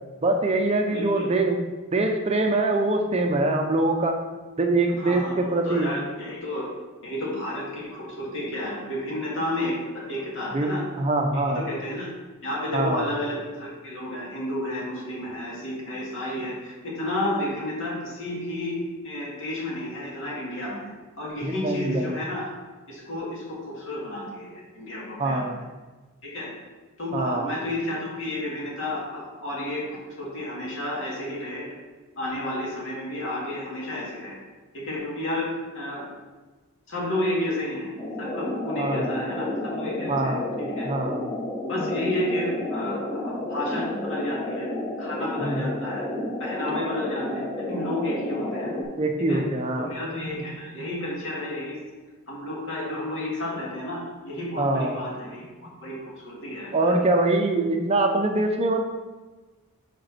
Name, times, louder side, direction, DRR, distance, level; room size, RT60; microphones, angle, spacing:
voice 1, 0.2-1.6 1.9-4.2 4.6-5.9 10.5-11.6 12.7-13.1 21.4-22.2 25.2-25.6 27.1-27.5 38.8-39.1 40.1-40.5 40.8-41.2 45.4-45.7 49.0-49.9 54.6-54.9 56.7-58.8, right 2 dB, 30° right, 3 dB, 0.6 m, -23 dB
voice 2, 0.9-1.4 5.0-6.7 7.0-10.8 11.5-12.1 12.4-20.9 21.2-22.5 22.9-25.5 26.2-26.5 27.0-31.8 32.2-34.4 34.7-36.1 36.9-37.9 38.2-40.9 41.7-44.7 45.0-46.1 46.4-48.8 49.3-49.4 49.8-51.8 52.3-57.0, left 1 dB, 60° left, -5 dB, 2.4 m, -31 dB
sound 1, 38.0-48.8, left 1 dB, 10° left, 1.1 m, -31 dB
5.3 x 5.2 x 5.8 m, 1.3 s
head